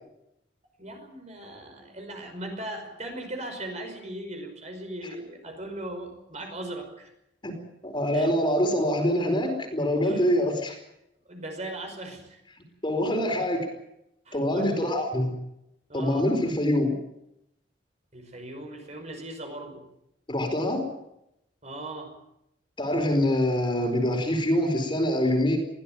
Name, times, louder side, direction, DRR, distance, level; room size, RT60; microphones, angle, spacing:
voice 1, 0.8-7.1 8.1-8.3 10.0-10.3 11.3-12.4 14.3-14.9 15.9-16.3 18.1-19.8 21.6-22.1, right 1 dB, 35° right, 5 dB, 5.4 m, -38 dB
voice 2, 7.8-10.8 12.8-13.7 14.3-15.3 15.9-16.9 20.3-20.8 22.8-25.6, left 1 dB, 25° left, 4 dB, 4.7 m, -25 dB
22.0 x 16.5 x 9.2 m, 0.84 s
head